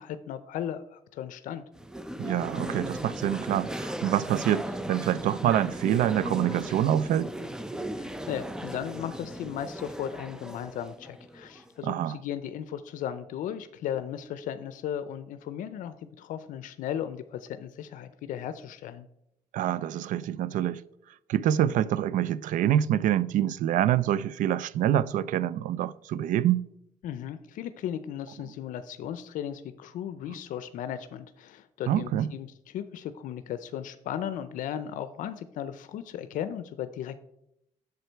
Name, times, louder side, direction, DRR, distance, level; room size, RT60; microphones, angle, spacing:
voice 1, 0.0-1.6 8.0-19.1 27.0-37.2, left 10 dB, 80° left, 0.5 m, -36 dB
sound 1, 1.8-11.8, right 1 dB, 5° right, 0.5 m, -37 dB
voice 2, 2.2-7.3 11.8-12.2 19.5-20.8 21.3-26.6 31.9-32.3, right 11 dB, 80° right, 0.4 m, -26 dB
8.0 x 6.8 x 4.5 m
cardioid pair, 130°, 13 cm